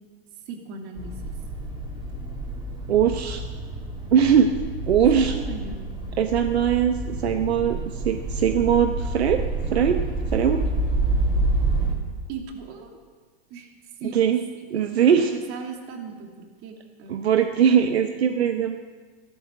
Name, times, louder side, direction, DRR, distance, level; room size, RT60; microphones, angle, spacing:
voice 1, 0.5-1.3 5.0-5.9 12.3-13.0 13.5-13.7 14.0-14.2 14.7-17.2 18.3-18.5, right 5 dB, 45° right, 3 dB, 2.8 m, -38 dB
sound 1, 1.0-12.0, right 2 dB, 15° right, 3.2 m, -28 dB
voice 2, 2.9-3.4 4.1-4.5 4.9-5.3 6.2-9.4 9.7-10.0 10.3-10.6 14.1-14.4 14.7-15.3 17.1-18.8, right 8 dB, 80° right, 6 dB, 1.0 m, -20 dB
13.0 x 13.0 x 7.7 m, 1.5 s
hypercardioid pair, 105°, 31 cm